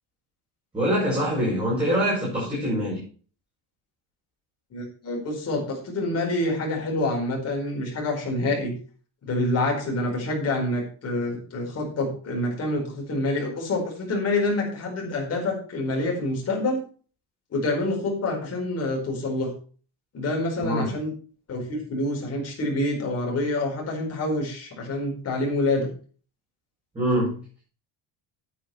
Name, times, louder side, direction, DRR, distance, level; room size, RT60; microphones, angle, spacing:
voice 1, 0.7-3.0 20.6-20.9 26.9-27.4, equal, 10° right, -8 dB, 6.8 m, -24 dB
voice 2, 4.7-8.7 9.2-16.8 17.5-19.5 20.1-21.1 21.5-25.9, left 2 dB, 30° left, -1 dB, 4.7 m, -27 dB
11.0 x 9.2 x 4.5 m, 0.40 s
cardioid pair, 175°, 46 cm